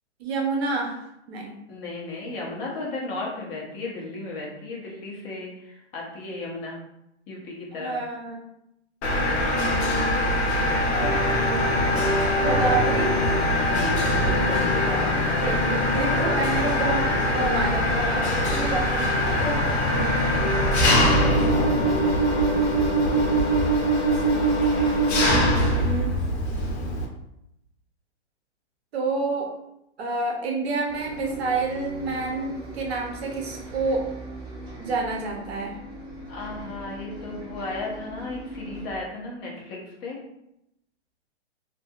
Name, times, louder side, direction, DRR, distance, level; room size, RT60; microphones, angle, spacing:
voice 1, 0.2-1.6 7.8-8.4 9.1-11.8 12.4-13.2 15.4-15.6 15.9-19.4 24.2-25.0 25.3-26.1 28.9-29.5 30.0-34.0 34.8-35.7, right 3 dB, 60° right, 0 dB, 0.6 m, -29 dB
voice 2, 1.7-6.8 7.3-7.9 13.6-15.4 16.1-16.3 19.0-19.1 20.9-23.0 36.3-40.2, left 2 dB, 25° left, -3 dB, 0.7 m, -35 dB
Mechanisms, 9.0-27.1, equal, 65° left, 0.8 m, -23 dB
sound 1, 10.9-23.6, left 1 dB, 45° right, 1.4 m, -30 dB
Bus, 30.9-39.0, right 1 dB, 10° right, 0.4 m, -40 dB
2.6 x 2.5 x 2.3 m, 0.81 s
hypercardioid pair, 140°, 35 cm